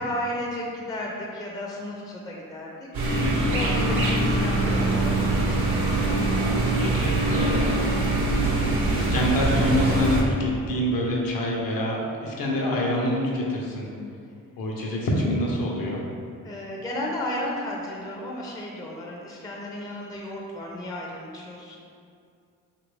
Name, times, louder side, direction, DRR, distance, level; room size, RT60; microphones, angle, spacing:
voice 1, 0.0-3.1 3.5-6.2 16.4-21.8, left 1 dB, 10° left, -2 dB, 0.4 m, -34 dB
sound 1, 2.9-10.2, right 2 dB, 75° right, 0.7 m, -23 dB
voice 2, 3.2-3.6 6.8-7.9 8.9-13.9 14.6-16.0, left 1 dB, 65° left, -2 dB, 0.7 m, -26 dB
2.9 x 2.5 x 3.2 m, 2.4 s
supercardioid pair, 45°, 38 cm